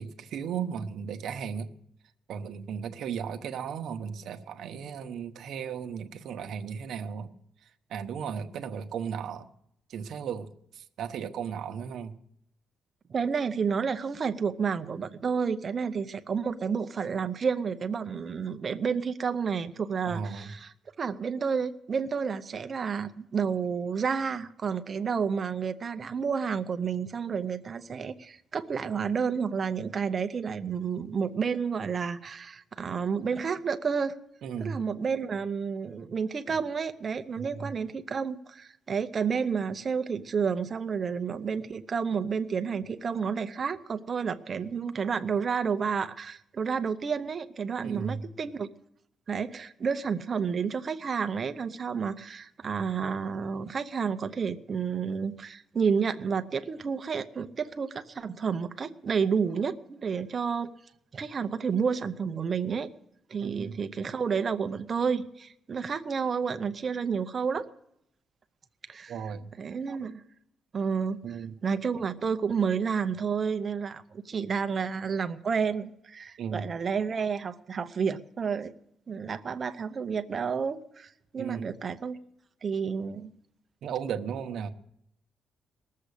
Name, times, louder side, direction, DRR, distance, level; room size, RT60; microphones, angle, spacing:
voice 1, 0.0-1.7 2.3-7.3 7.9-9.5 9.9-12.2 20.1-20.5 34.4-34.8 36.5-36.6 37.4-37.7 47.8-48.3 63.4-63.8 69.1-69.5 71.2-71.6 76.4-76.7 81.4-81.7 83.8-84.7, right 7 dB, 60° right, 7 dB, 0.9 m, -35 dB
voice 2, 13.1-20.7 21.0-34.1 34.6-48.7 49.3-60.7 61.1-62.9 63.3-67.7 68.9-69.1 69.6-70.2 70.7-71.2 71.6-78.7 79.1-82.2 82.6-83.3, right 6 dB, 30° right, 9 dB, 0.7 m, -30 dB
19.5 x 7.5 x 8.3 m, 0.76 s
cardioid pair, 175°, 0 cm